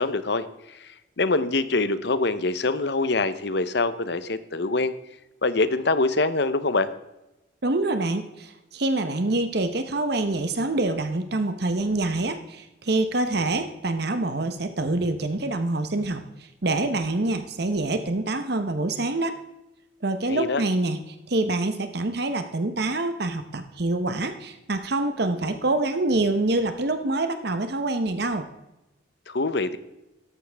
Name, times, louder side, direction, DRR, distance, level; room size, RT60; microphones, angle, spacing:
voice 1, 0.0-4.9 5.4-6.9 20.3-20.6 29.3-29.8, left 3 dB, 60° left, 13 dB, 0.8 m, -24 dB
voice 2, 7.6-19.4 20.0-21.0 21.3-28.4, right 2 dB, 55° right, 9 dB, 0.9 m, -26 dB
14.0 x 11.5 x 3.5 m, 0.96 s
head